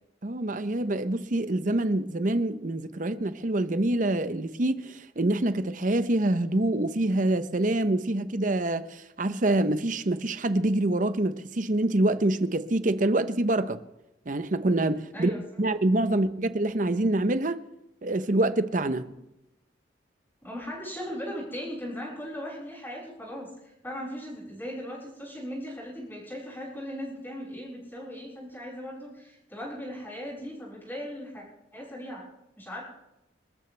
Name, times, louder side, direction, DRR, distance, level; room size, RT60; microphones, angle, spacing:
voice 1, 0.2-13.8 14.3-15.3 15.6-17.6 18.0-19.1, right 1 dB, 45° right, 0.8 m, -26 dB
voice 2, 15.1-15.6 20.4-31.4 31.7-32.2 32.6-32.8, equal, 10° left, 6.8 m, -38 dB
28.0 x 14.0 x 3.4 m
head